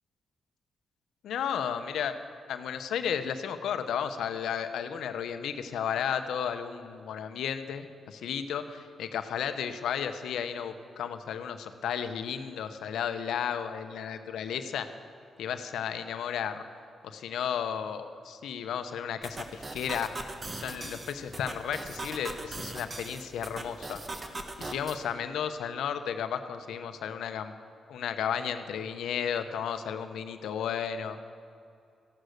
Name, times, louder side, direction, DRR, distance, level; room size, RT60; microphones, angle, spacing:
voice 1, 1.2-2.1 2.5-14.9 15.4-16.6 17.0-20.1 20.5-24.0 24.6-27.5 27.9-31.2, left 8 dB, 80° left, 9 dB, 0.8 m, -33 dB
sound 1, 19.2-25.0, right 2 dB, 35° right, 1.5 m, -40 dB
14.0 x 11.5 x 6.5 m, 2.5 s
supercardioid pair, 55°, 0 cm